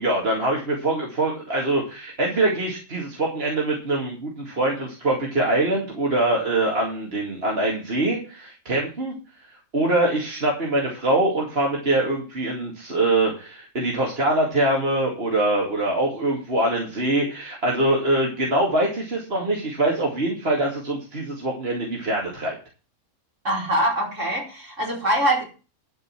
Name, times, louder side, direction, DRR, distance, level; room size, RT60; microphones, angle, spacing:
voice 1, 0.0-9.1 9.7-22.6, right 2 dB, 50° right, -1 dB, 2.6 m, -23 dB
voice 2, 23.4-25.4, right 1 dB, 65° right, -2 dB, 5.2 m, -23 dB
11.5 x 5.5 x 7.2 m, 0.34 s
omnidirectional pair, 1.4 m